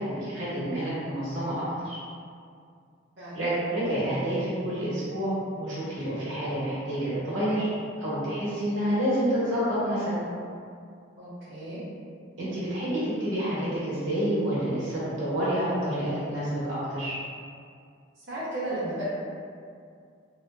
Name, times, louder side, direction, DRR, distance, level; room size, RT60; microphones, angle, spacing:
voice 1, 0.0-2.0 3.3-7.7 8.0-10.2 12.4-17.2, equal, 70° right, -10 dB, 1.0 m, -28 dB
voice 2, 11.2-11.8 18.3-19.0, right 1 dB, 55° right, -15 dB, 0.7 m, -34 dB
2.7 x 2.1 x 2.4 m, 2.3 s
head